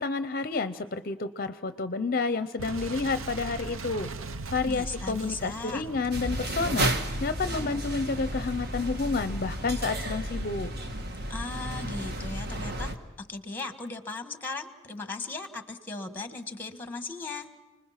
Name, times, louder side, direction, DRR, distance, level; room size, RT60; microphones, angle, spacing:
voice 1, 0.0-4.1 4.5-10.7, left 4 dB, 45° left, 11 dB, 0.6 m, -30 dB
Boom, 2.6-8.2, right 3 dB, 80° right, 0.9 m, -39 dB
voice 2, 4.6-5.8 11.3-17.5, left 3 dB, 10° left, 8 dB, 1.4 m, -37 dB
sound 1, 6.1-13.0, right 1 dB, 50° right, 1.6 m, -32 dB
29.5 x 21.0 x 5.8 m, 1.2 s
head